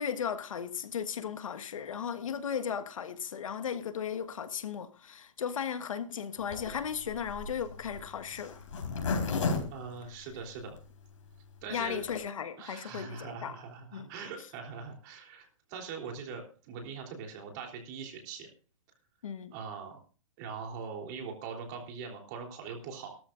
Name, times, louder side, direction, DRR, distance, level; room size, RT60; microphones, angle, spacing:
voice 1, 0.0-8.5 11.7-13.6 13.9-14.1 19.2-19.5, left 7 dB, 90° left, 1.4 m, -36 dB
Zipper (clothing), 6.5-10.8 11.3-11.4 11.5-11.6 11.9-12.2, left 4 dB, 70° left, 4.3 m, -33 dB
voice 2, 9.7-10.8 11.6-12.0 12.6-18.5 19.5-20.0 20.4-23.2, right 5 dB, 35° right, 3.4 m, -42 dB
17.5 x 13.0 x 2.5 m
hypercardioid pair, 160°, 16 cm